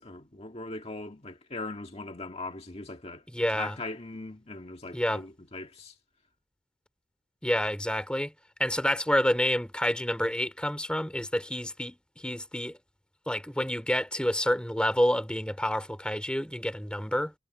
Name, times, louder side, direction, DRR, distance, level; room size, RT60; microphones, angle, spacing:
voice 1, 0.0-6.0, left 2 dB, 35° left, 1.8 m, -40 dB
voice 2, 3.3-3.8 4.9-5.2 7.4-8.3 8.6-12.8 13.3-17.3, equal, 5° left, 2.7 m, -28 dB
head